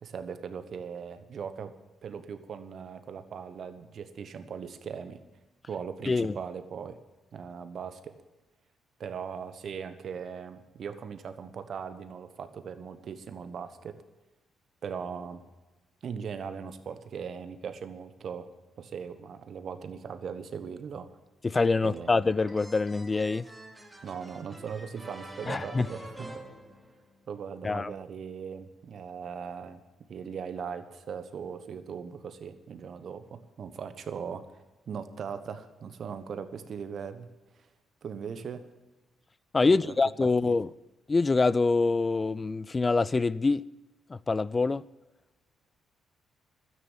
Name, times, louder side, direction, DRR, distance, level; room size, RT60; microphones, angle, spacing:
voice 1, 0.0-1.7 2.0-5.2 5.7-7.0 7.3-8.1 9.0-14.0 14.8-15.4 16.0-18.5 18.8-21.1 21.8-22.1 24.0-26.3 27.3-29.8 30.1-34.4 34.9-37.3 38.0-38.6 39.6-39.9 40.4-40.6, right 6 dB, 55° right, 1.1 m, -39 dB
voice 2, 21.4-23.4 25.5-25.9 27.6-27.9 39.5-40.7 41.1-43.6 44.1-44.8, left 3 dB, 30° left, 0.3 m, -25 dB
sound 1, 22.0-27.4, right 1 dB, 10° right, 2.4 m, -47 dB
13.0 x 9.7 x 7.2 m
hypercardioid pair, 45°, 0 cm